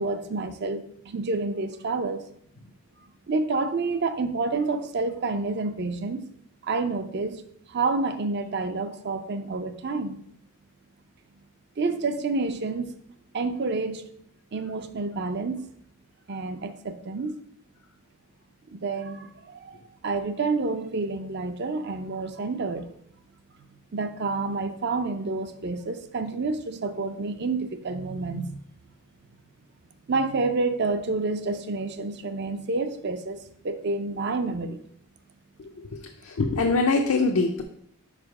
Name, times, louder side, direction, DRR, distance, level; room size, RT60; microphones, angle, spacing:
voice 1, 0.0-2.2 3.3-6.2 6.6-7.4 7.7-10.2 11.8-13.0 13.3-14.1 14.5-15.6 16.3-17.3 18.7-22.9 23.9-28.6 30.1-34.8, right 3 dB, 50° right, 10 dB, 0.5 m, -29 dB
voice 2, 35.9-37.6, left 3 dB, 75° left, 3 dB, 0.6 m, -23 dB
5.2 x 5.0 x 4.7 m, 0.68 s
head